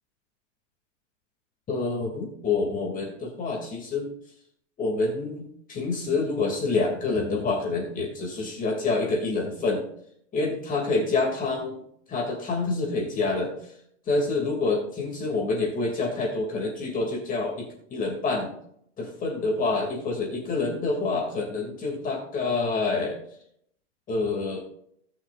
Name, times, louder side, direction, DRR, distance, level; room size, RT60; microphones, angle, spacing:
voice 1, 1.7-4.1 4.8-9.8 10.3-11.8 12.1-13.5 14.1-18.5 19.0-23.2 24.1-24.6, left 3 dB, 20° left, 0 dB, 2.5 m, -27 dB
19.0 x 6.4 x 2.5 m, 0.68 s
supercardioid pair, 145°, 36 cm